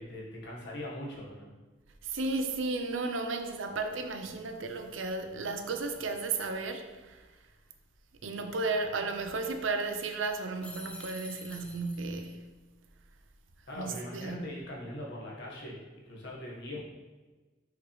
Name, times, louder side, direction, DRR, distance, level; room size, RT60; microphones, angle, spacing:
voice 1, 0.0-1.5 13.7-15.8 16.1-16.8, left 1 dB, 60° left, 1.7 m, -41 dB
voice 2, 2.0-7.2 8.2-12.5 13.8-14.4, right 3 dB, 90° right, 0.7 m, -34 dB
sound 1, 10.6-12.3, left 1 dB, 5° left, 0.7 m, -47 dB
5.9 x 5.8 x 3.3 m
head